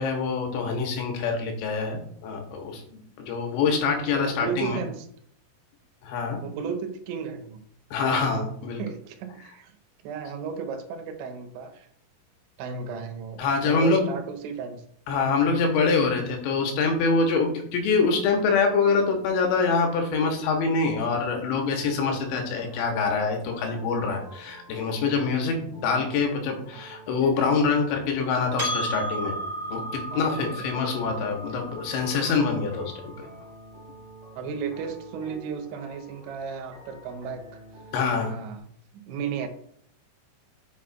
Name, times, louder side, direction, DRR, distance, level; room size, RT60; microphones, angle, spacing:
voice 1, 0.0-2.8 3.2-4.8 6.0-6.4 7.9-8.8 13.4-14.0 15.1-29.4 29.7-33.1 37.9-38.4, left 4 dB, 85° left, 3 dB, 3.3 m, -25 dB
voice 2, 4.1-5.1 6.4-7.6 8.8-9.7 10.0-11.9 12.6-14.8 30.1-30.9 34.4-37.6 38.2-38.7 38.9-39.5, right 6 dB, 80° right, 7 dB, 3.0 m, -34 dB
sound 1, 21.3-38.2, right 1 dB, 30° right, 1.6 m, -48 dB
Percussion, 28.6-33.4, right 1 dB, 10° right, 1.3 m, -34 dB
8.1 x 5.8 x 2.4 m, 0.64 s
omnidirectional pair, 5.2 m